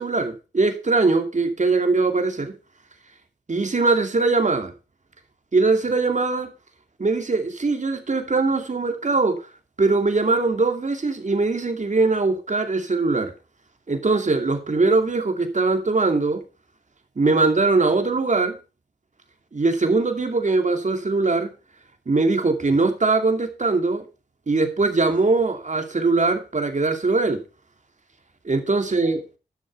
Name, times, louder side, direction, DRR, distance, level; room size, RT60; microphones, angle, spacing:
voice 1, 0.0-2.5 3.5-4.7 5.5-6.5 7.0-9.4 9.8-13.3 13.9-16.4 17.2-18.6 19.5-21.5 22.1-24.0 24.5-27.4 28.4-29.2, right 3 dB, 45° right, 2.5 m, -21 dB
11.5 x 6.6 x 5.3 m
cardioid pair, 45°, 18 cm